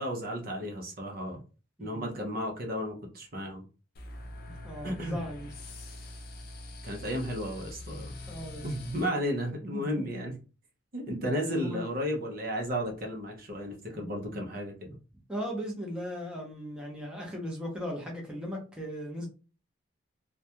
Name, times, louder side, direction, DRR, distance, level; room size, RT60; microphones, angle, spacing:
voice 1, 0.0-1.4 1.8-3.6 4.8-5.3 6.8-8.1 8.6-10.4 10.9-15.0, equal, 50° right, 1 dB, 0.6 m, -33 dB
voice 2, 1.8-2.1 4.6-5.5 8.3-8.6 9.7-9.8 11.5-11.8 13.9-14.4 15.3-19.3, equal, 5° right, -2 dB, 0.7 m, -38 dB
sound 1, 3.9-9.1, left 1 dB, 50° left, 0.5 m, -44 dB
2.3 x 2.2 x 2.8 m, 0.33 s
head